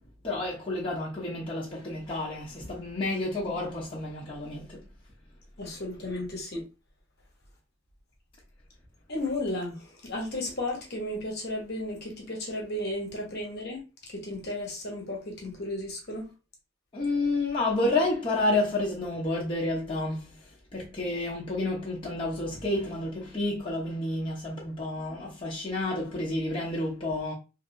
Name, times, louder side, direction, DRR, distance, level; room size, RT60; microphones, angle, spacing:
voice 1, 0.2-4.8 16.9-20.4 20.7-27.3, left 2 dB, 25° left, 0.9 m, -30 dB
voice 2, 5.6-6.6 9.1-13.8 14.1-16.3, left 1 dB, 50° left, 1.1 m, -34 dB
3.3 x 2.7 x 2.4 m
head